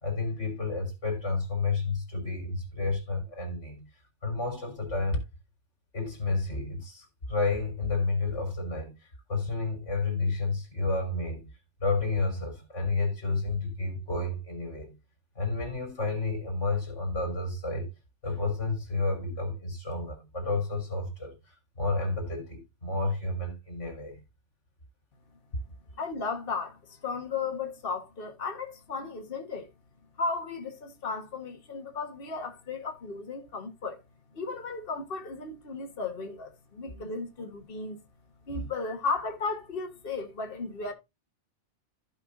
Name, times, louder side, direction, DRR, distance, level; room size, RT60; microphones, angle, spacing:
voice 1, 0.0-3.8 4.2-5.2 5.9-8.9 9.3-11.5 11.8-14.9 15.4-17.9 18.2-21.4 21.8-24.2 36.9-37.1 38.5-38.6, left 3 dB, 85° left, 3.8 m, -30 dB
voice 2, 26.0-29.7 30.2-34.0 34.3-38.0 38.5-40.9, left 4 dB, 50° left, 1.6 m, -35 dB
15.0 x 5.6 x 2.6 m
omnidirectional pair, 1.2 m